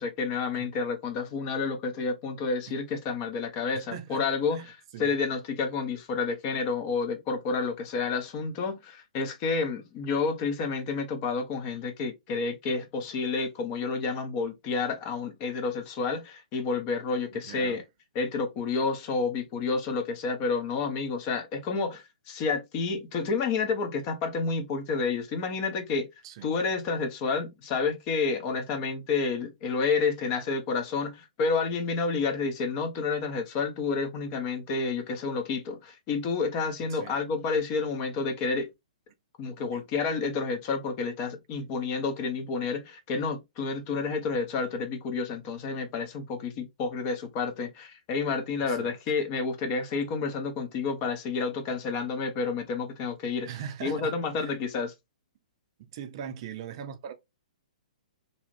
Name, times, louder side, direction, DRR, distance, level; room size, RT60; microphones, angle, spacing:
voice 1, 0.0-17.8 18.1-26.1 26.4-38.7 39.4-53.5 53.8-54.9, left 4 dB, 35° left, 0.7 m, -30 dB
voice 2, 3.7-4.2 4.5-5.1 17.3-17.8 26.2-26.5 36.9-37.2 39.7-39.8 48.6-48.9 53.5-54.6 55.8-57.1, right 8 dB, 40° right, 0.4 m, -41 dB
2.6 x 2.4 x 3.2 m
figure-of-eight pair, 115°, 4 cm